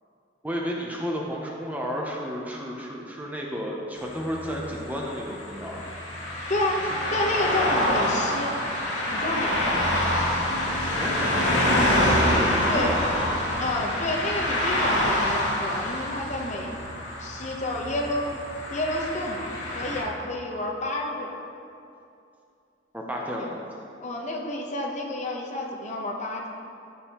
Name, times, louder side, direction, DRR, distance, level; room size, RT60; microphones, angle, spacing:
voice 1, 0.4-6.4 11.0-11.7 12.3-13.0 22.9-23.6, equal, 10° right, -2 dB, 0.6 m, -32 dB
sound 1, 4.0-20.0, left 1 dB, 70° left, 1.8 m, -26 dB
voice 2, 6.5-6.8 7.1-8.5 9.1-9.8 12.7-12.9 13.6-16.7 17.2-18.3 18.7-21.3 23.4-23.5 24.0-26.5, left 1 dB, 40° left, -1 dB, 0.9 m, -30 dB
14.0 x 5.3 x 2.9 m, 2.6 s
head